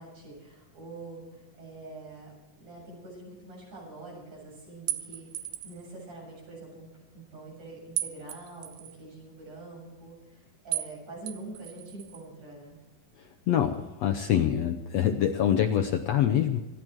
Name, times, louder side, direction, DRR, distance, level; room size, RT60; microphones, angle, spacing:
voice 1, 0.0-12.8, right 2 dB, 50° right, -3 dB, 8.7 m, -45 dB
sound 1, 4.9-5.9 8.0-9.0 10.7-11.0 11.3-12.2, right 14 dB, 85° right, 2.5 m, -35 dB
voice 2, 13.2-16.6, left 10 dB, 75° left, 6 dB, 1.5 m, -25 dB
25.5 x 11.0 x 4.6 m, 1.1 s
omnidirectional pair, 3.9 m